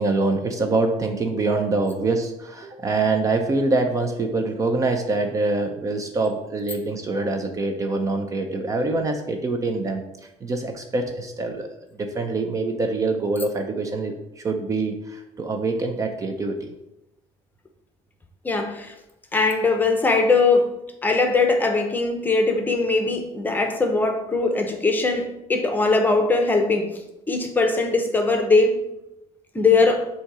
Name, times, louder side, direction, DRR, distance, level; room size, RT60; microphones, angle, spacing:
voice 1, 0.0-10.0 10.4-11.7 12.0-16.7, right 3 dB, 30° right, 5 dB, 0.5 m, -25 dB
voice 2, 18.4-18.9 19.3-20.7 21.0-26.9 27.3-28.8 29.5-30.1, left 3 dB, 15° left, 5 dB, 0.8 m, -20 dB
7.4 x 2.8 x 4.8 m, 0.89 s
cardioid pair, 140°, 11 cm